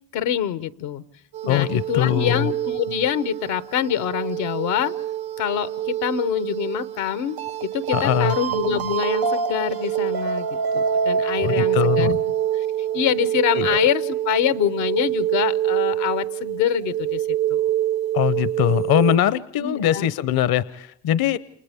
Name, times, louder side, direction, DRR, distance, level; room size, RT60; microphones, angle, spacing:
voice 1, 0.1-1.0 1.4-4.9 5.4-12.1 12.9-17.6 19.6-20.1, left 10 dB, 80° left, 14 dB, 1.0 m, -25 dB
sound 1, 1.3-19.2, right 10 dB, 60° right, 0.9 m, -25 dB
voice 2, 1.5-2.5 7.9-8.3 11.4-12.2 13.6-13.7 18.1-21.4, left 11 dB, 55° left, 16 dB, 0.8 m, -21 dB
28.5 x 28.5 x 3.5 m, 0.64 s
supercardioid pair, 65°, 44 cm